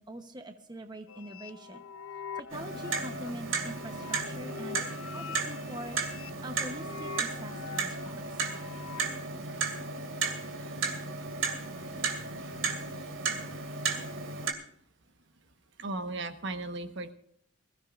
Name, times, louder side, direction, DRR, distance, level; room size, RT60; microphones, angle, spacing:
voice 1, 0.0-1.8 2.3-8.5, right 1 dB, 20° right, 6 dB, 0.9 m, -44 dB
sound 1, 1.1-9.1, left 6 dB, 80° left, 0.7 m, -44 dB
Clock, 2.5-14.5, right 4 dB, 75° right, 2.4 m, -34 dB
voice 2, 15.8-17.1, right 2 dB, 60° right, 8 dB, 1.2 m, -36 dB
21.5 x 15.0 x 2.5 m, 0.66 s
head